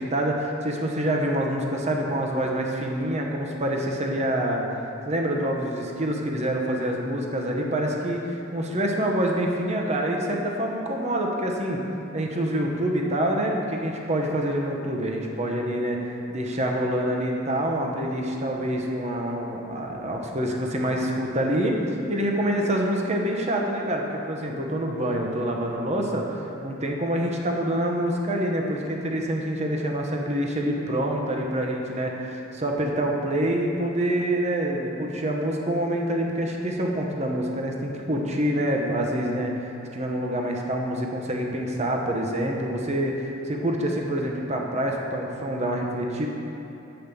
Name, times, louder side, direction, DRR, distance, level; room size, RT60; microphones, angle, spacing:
voice 1, 0.0-4.6 5.1-11.8 12.1-16.0 16.3-46.3, right 1 dB, 35° right, 0 dB, 0.9 m, -26 dB
7.9 x 5.1 x 6.9 m, 3.0 s
head